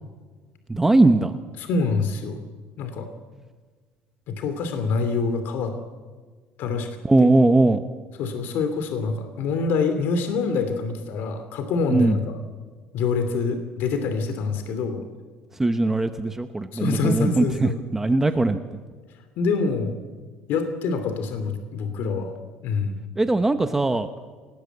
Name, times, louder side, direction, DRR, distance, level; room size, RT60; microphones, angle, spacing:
voice 1, 0.7-1.3 7.0-7.8 11.9-12.2 15.6-18.6 23.2-24.1, right 2 dB, 10° right, 9 dB, 0.9 m, -20 dB
voice 2, 1.6-2.4 2.8-3.1 4.3-5.7 6.6-6.9 7.2-7.3 8.2-12.4 12.9-15.0 16.7-17.8 19.4-19.9 20.5-22.4 22.6-23.0, left 4 dB, 55° left, 8 dB, 2.6 m, -25 dB
28.0 x 17.5 x 8.1 m, 1.5 s
cardioid pair, 150°, 4 cm